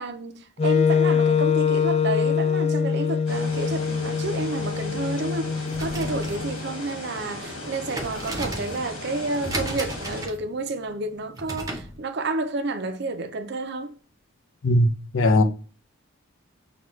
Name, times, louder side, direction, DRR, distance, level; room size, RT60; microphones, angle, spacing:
voice 1, 0.0-13.9, right 2 dB, 55° right, 0.5 m, -30 dB
Wind instrument woodwind instrument, 0.6-6.6, left 6 dB, 30° left, 0.3 m, -24 dB
sound 1, 3.3-10.2, left 1 dB, 90° left, 1.8 m, -37 dB
sound 2, 5.6-12.0, right 1 dB, 15° right, 0.7 m, -35 dB
voice 2, 15.1-15.4, left 1 dB, 65° left, 0.6 m, -18 dB
6.0 x 2.4 x 3.0 m
head